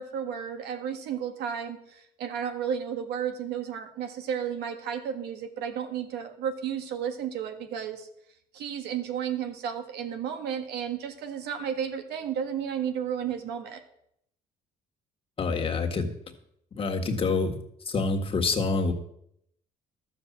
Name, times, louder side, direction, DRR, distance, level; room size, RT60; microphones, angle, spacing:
voice 1, 0.0-8.1 8.5-13.8, right 8 dB, 80° right, 6 dB, 1.7 m, -33 dB
voice 2, 15.4-16.1 16.7-17.6 17.9-18.9, left 4 dB, 35° left, 3 dB, 1.7 m, -26 dB
12.5 x 7.2 x 7.3 m, 0.73 s
cardioid pair, 110°, 17 cm